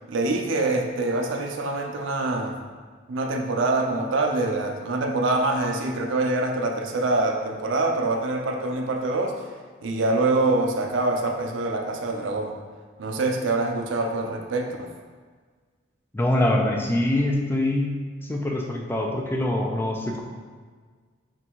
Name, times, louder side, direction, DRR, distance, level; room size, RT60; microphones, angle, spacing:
voice 1, 0.1-2.6 3.1-9.4 9.8-12.6 13.0-14.9, right 2 dB, 85° right, 2 dB, 0.5 m, -25 dB
voice 2, 16.1-18.0 18.3-20.2, left 1 dB, 10° left, 0 dB, 0.4 m, -24 dB
3.9 x 2.3 x 4.4 m, 1.5 s
head